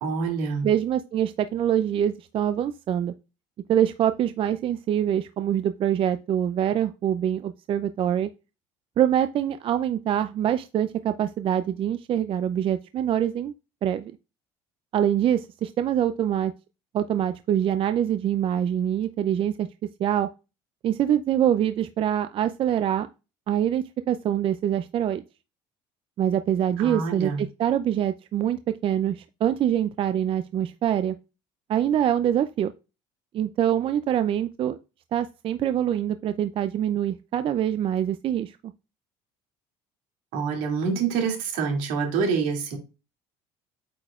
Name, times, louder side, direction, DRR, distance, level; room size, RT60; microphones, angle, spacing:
voice 1, 0.0-0.7 26.8-27.4 40.3-42.8, right 5 dB, 75° right, 2 dB, 2.5 m, -26 dB
voice 2, 0.6-3.1 3.7-8.3 9.0-13.5 13.8-14.1 14.9-16.5 16.9-19.7 20.0-20.3 20.8-23.1 23.5-25.2 26.2-31.2 31.7-32.7 33.3-34.8 35.1-38.7, right 10 dB, 45° right, 10 dB, 0.4 m, -24 dB
8.5 x 5.0 x 2.4 m, 0.29 s
supercardioid pair, 95°, 13 cm